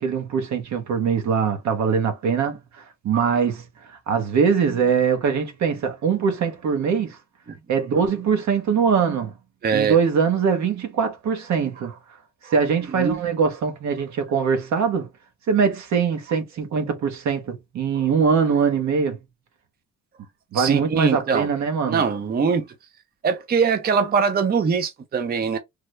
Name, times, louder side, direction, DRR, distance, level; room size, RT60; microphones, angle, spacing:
voice 1, 0.0-2.6 3.0-7.2 7.7-9.3 9.7-12.0 12.5-15.1 15.5-19.2 20.5-22.0, right 6 dB, 65° right, 1.0 m, -22 dB
voice 2, 9.6-10.0 12.4-12.5 13.0-13.2 20.5-21.5 21.9-22.7 23.2-25.6, right 6 dB, 30° right, 0.5 m, -22 dB
3.4 x 2.1 x 3.1 m
cardioid pair, 90°, 30 cm